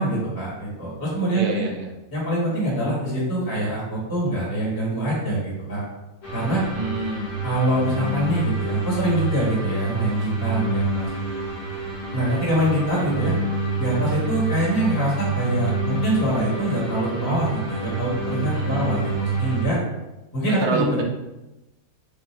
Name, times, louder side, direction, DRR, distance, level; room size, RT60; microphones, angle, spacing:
voice 1, 0.0-1.4 2.1-5.8 6.3-6.6 7.4-11.1 12.1-13.3 13.8-19.8 20.3-21.0, right 1 dB, 15° left, -7 dB, 1.3 m, -24 dB
voice 2, 1.3-1.9 6.7-7.2 18.5-19.0 20.5-21.0, right 3 dB, 85° right, 2 dB, 1.2 m, -27 dB
sound 1, 6.2-19.7, right 3 dB, 75° left, 1.5 m, -28 dB
3.6 x 2.4 x 4.2 m, 0.99 s
omnidirectional pair, 1.6 m